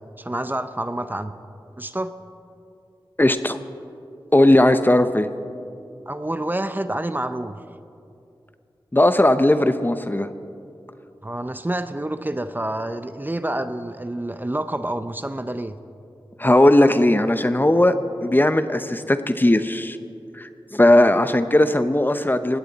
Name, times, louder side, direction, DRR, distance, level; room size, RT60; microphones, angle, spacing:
voice 1, 0.0-1.3 1.8-2.1 6.1-7.6 11.2-15.8, right 1 dB, 20° right, 10 dB, 0.7 m, -28 dB
voice 2, 3.2-3.6 4.3-5.3 8.9-10.3 16.4-17.9 18.2-20.0 20.3-22.6, left 1 dB, 20° left, 10 dB, 0.8 m, -17 dB
20.0 x 17.5 x 4.1 m, 2.6 s
wide cardioid pair, 55°, 9 cm